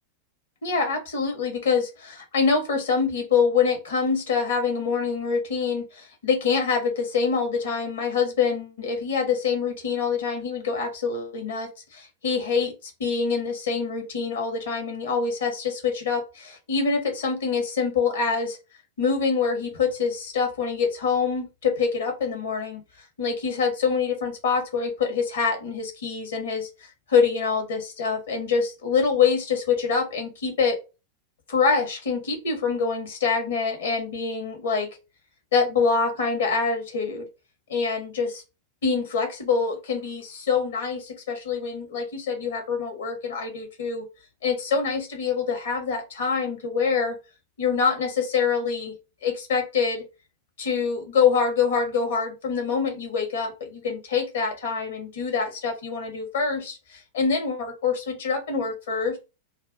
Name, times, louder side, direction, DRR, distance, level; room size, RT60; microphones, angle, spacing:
voice 1, 0.6-18.6 19.0-22.8 23.2-26.7 27.1-30.8 31.5-34.9 35.5-37.3 37.7-38.4 38.8-44.0 44.4-47.1 47.6-48.9 49.2-50.0 50.6-59.2, left 5 dB, 60° left, 3 dB, 0.9 m, -25 dB
2.3 x 2.1 x 3.7 m, 0.28 s
figure-of-eight pair, 90°, 0 cm